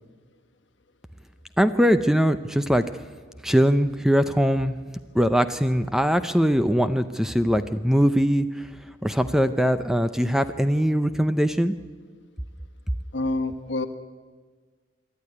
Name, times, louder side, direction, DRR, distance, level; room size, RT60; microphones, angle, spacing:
voice 1, 1.6-2.8 3.4-4.8 5.1-8.5 9.0-11.7, equal, ahead, 10 dB, 0.5 m, -21 dB
voice 2, 13.1-13.9, left 2 dB, 65° left, 8 dB, 1.3 m, -27 dB
26.0 x 11.5 x 9.8 m, 1.5 s
head